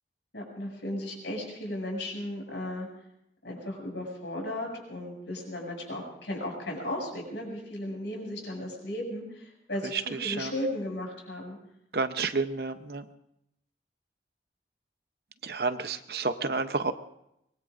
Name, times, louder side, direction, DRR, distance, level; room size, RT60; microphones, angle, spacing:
voice 1, 0.3-2.9 3.4-11.6, left 1 dB, 75° left, 0 dB, 6.9 m, -35 dB
voice 2, 9.9-10.5 11.9-13.0 15.4-16.9, right 4 dB, 60° right, 10 dB, 0.8 m, -30 dB
24.0 x 22.0 x 2.6 m, 0.79 s
head